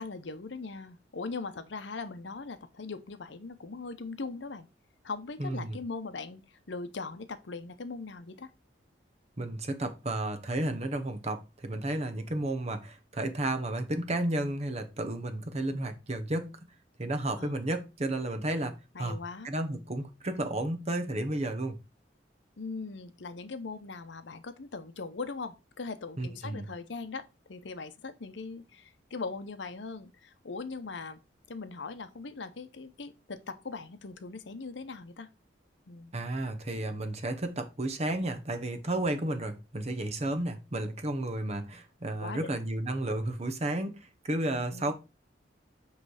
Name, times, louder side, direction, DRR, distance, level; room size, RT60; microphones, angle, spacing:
voice 1, 0.0-4.7 5.0-6.4 6.7-8.5 17.4-17.5 18.9-19.5 22.6-31.2 31.5-35.3 35.9-36.1 42.2-42.6 44.7-44.9, left 4 dB, 70° left, 0.8 m, -40 dB
voice 2, 5.4-5.8 9.4-16.5 17.0-18.7 19.0-21.8 26.2-26.7 36.1-44.9, right 1 dB, 35° right, 0.9 m, -32 dB
7.7 x 3.3 x 4.8 m
head